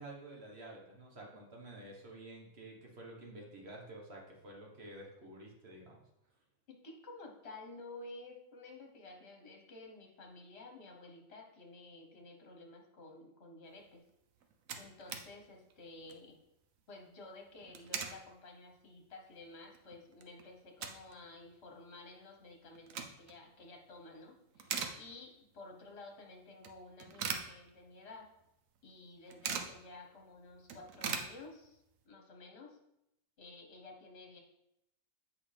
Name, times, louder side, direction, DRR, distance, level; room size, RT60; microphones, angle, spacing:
voice 1, 0.0-6.0, right 1 dB, 50° right, -1 dB, 1.5 m, -50 dB
voice 2, 6.7-14.0 14.8-16.4 16.9-28.3 28.8-32.8 33.4-34.4, left 2 dB, 55° left, 2 dB, 1.4 m, -52 dB
sound 1, 14.1-14.2 14.4-15.3 15.7-15.8 16.0-16.3 17.5-18.2 18.7-18.8 19.3-19.4 19.7-21.2 21.5-21.6 22.6-23.4 23.9-24.2 24.5-25.5 25.8-25.9 26.6-28.1 28.4-28.5 28.8-29.8 30.2-30.3 30.5-31.9, right 6 dB, 80° right, 1.1 m, -41 dB
7.9 x 5.2 x 3.4 m, 0.83 s
omnidirectional pair, 1.4 m